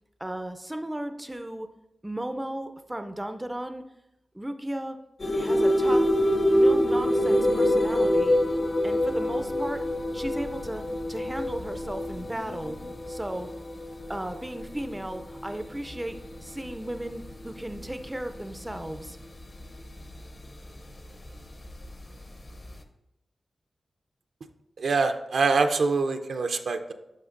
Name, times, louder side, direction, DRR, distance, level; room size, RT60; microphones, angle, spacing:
voice 1, 0.2-1.7 2.0-3.8 4.3-5.0 5.3-6.1 6.5-8.4 8.8-9.9 10.1-12.8 13.1-13.5 14.1-19.2, right 1 dB, 10° right, 8 dB, 0.4 m, -35 dB
sound 1, 5.2-20.8 21.3-22.7, equal, 30° left, 0.6 m, -26 dB
sound 2, 6.2-13.0, left 2 dB, 60° left, 1.3 m, -48 dB
voice 2, 24.8-26.9, right 4 dB, 70° right, 7 dB, 0.5 m, -24 dB
10.5 x 5.8 x 2.5 m, 0.90 s
wide cardioid pair, 120°, 0 cm